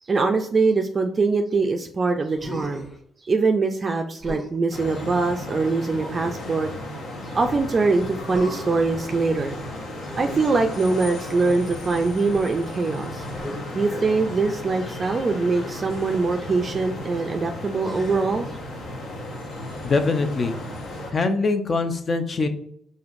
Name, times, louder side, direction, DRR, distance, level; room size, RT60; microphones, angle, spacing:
voice 1, 0.1-2.9 3.2-6.7 7.2-9.6 10.2-13.2 13.7-18.5, right 3 dB, 35° right, 4 dB, 0.4 m, -23 dB
Human voice, 2.4-3.0 4.2-4.6 5.9-6.6 8.3-8.9 10.0-11.3 13.3-13.6 15.6-15.9 17.8-18.4 19.9-20.5, equal, 15° left, 0.9 m, -39 dB
sound 1, 4.7-21.1, left 1 dB, 70° left, 1.0 m, -35 dB
voice 2, 19.8-20.6 21.1-22.5, left 3 dB, 40° left, 8 dB, 0.5 m, -23 dB
4.9 x 2.7 x 2.5 m, 0.69 s
cardioid pair, 90°, 0 cm